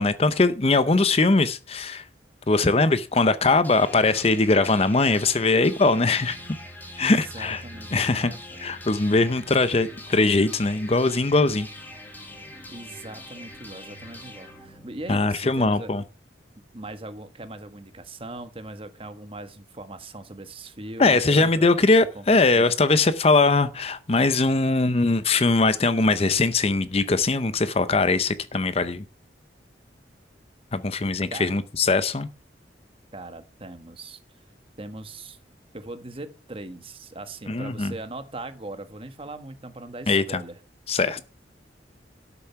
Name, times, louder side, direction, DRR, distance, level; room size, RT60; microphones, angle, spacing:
voice 1, 0.0-2.0 2.5-6.4 7.0-7.6 7.9-8.3 8.6-11.7 15.1-16.0 21.0-29.0 30.7-32.3 37.5-37.9 40.1-40.4 40.9-41.2, left 3 dB, 35° left, 0.7 m, -21 dB
sound 1, 3.6-15.6, left 1 dB, 10° left, 2.1 m, -43 dB
voice 2, 7.0-8.7 12.7-15.9 16.7-21.7 22.1-22.7 31.3-31.5 33.1-34.2 34.8-35.4 35.7-40.6, right 2 dB, 30° right, 1.2 m, -40 dB
12.5 x 7.0 x 5.7 m
head